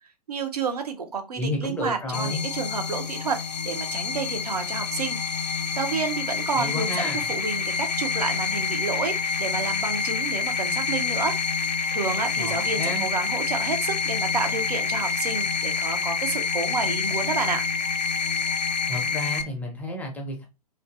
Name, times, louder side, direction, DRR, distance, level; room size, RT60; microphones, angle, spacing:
voice 1, 0.0-5.2 5.8-7.0 7.3-11.4 11.9-17.6, right 4 dB, 70° right, 0.7 m, -30 dB
voice 2, 1.4-2.5 6.6-7.3 12.4-13.1 18.9-20.5, left 1 dB, 5° left, 0.4 m, -31 dB
sound 1, 2.1-19.4, left 5 dB, 85° left, 0.4 m, -27 dB
2.5 x 2.5 x 2.4 m
figure-of-eight pair, 110°, 21 cm